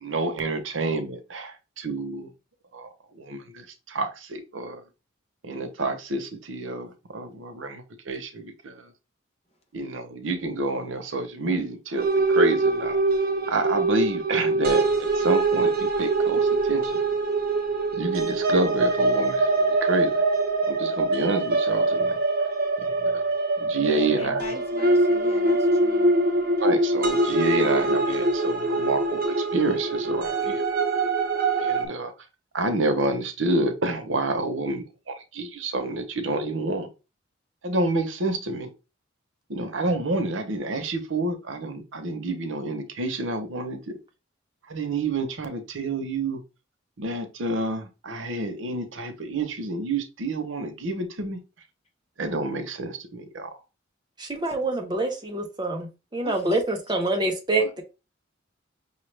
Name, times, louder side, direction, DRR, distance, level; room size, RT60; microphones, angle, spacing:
voice 1, 0.0-1.5 1.8-2.3 2.7-2.9 3.3-3.4 3.9-4.8 5.5-7.8 8.1-8.4 9.7-13.0 13.5-15.7 16.0-16.4 16.7-16.9 18.0-19.4 19.8-20.1 20.8-22.1 23.6-24.4 26.6-30.6 31.6-32.1 32.5-34.8 35.4-36.9 37.6-38.7 39.5-43.8 44.7-46.4 47.0-51.4 52.2-53.5 57.6-57.7, right 2 dB, 90° right, 0.9 m, -28 dB
sound 1, 12.0-31.9, right 2 dB, 50° right, 0.8 m, -23 dB
voice 2, 23.8-26.1 56.2-56.6, left 1 dB, 30° left, 1.0 m, -39 dB
voice 3, 54.2-55.9 56.1-57.8, right 2 dB, 20° right, 1.0 m, -26 dB
5.6 x 2.4 x 3.2 m
head